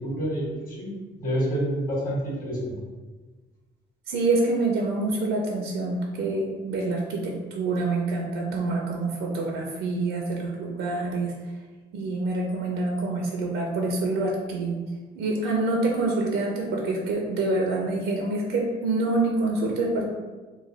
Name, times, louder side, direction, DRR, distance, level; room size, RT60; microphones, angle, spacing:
voice 1, 0.0-2.8, equal, 45° left, -5 dB, 1.5 m, -28 dB
voice 2, 4.1-11.3 11.9-14.8 15.2-20.1, right 2 dB, 85° right, 0 dB, 0.5 m, -26 dB
3.1 x 2.2 x 3.9 m, 1.3 s
cardioid pair, 90°, 20 cm